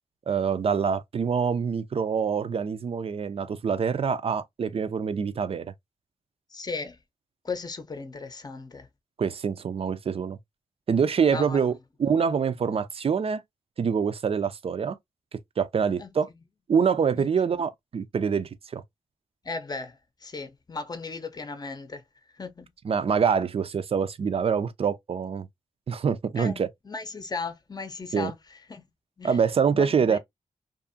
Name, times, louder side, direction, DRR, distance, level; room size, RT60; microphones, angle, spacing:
voice 1, 0.3-5.7 9.2-10.4 10.9-11.7 12.0-13.4 13.8-15.0 15.3-16.3 16.7-18.8 22.8-25.5 25.9-26.7 28.1-28.3 29.2-30.2, right 6 dB, 50° right, 0.4 m, -25 dB
voice 2, 6.5-7.0 7.4-8.9 11.3-11.6 16.0-16.1 17.2-17.3 19.4-22.0 22.4-22.7 26.3-28.4 28.7-28.9 29.2-29.4 29.7-30.2, left 4 dB, 30° left, 0.7 m, -36 dB
2.6 x 2.4 x 2.5 m
cardioid pair, 60°, 13 cm